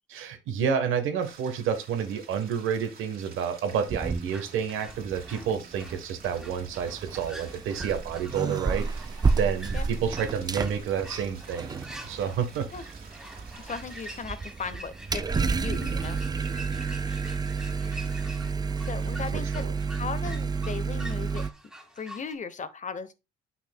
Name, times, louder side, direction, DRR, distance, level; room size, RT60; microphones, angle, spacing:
voice 1, 0.1-9.1 9.4-12.7 19.3-19.7, right 7 dB, 85° right, 1.2 m, -30 dB
sound 1, 1.2-14.2, right 5 dB, 50° right, 2.4 m, -51 dB
sound 2, 3.9-4.6 4.9-21.5, right 4 dB, 20° right, 0.4 m, -31 dB
sound 3, 4.3-22.3, right 1 dB, 5° right, 1.8 m, -47 dB
voice 2, 13.6-16.2 18.9-19.7 20.0-21.5 22.0-23.2, left 5 dB, 40° left, 0.8 m, -37 dB
8.7 x 5.7 x 2.2 m
cardioid pair, 90°, 20 cm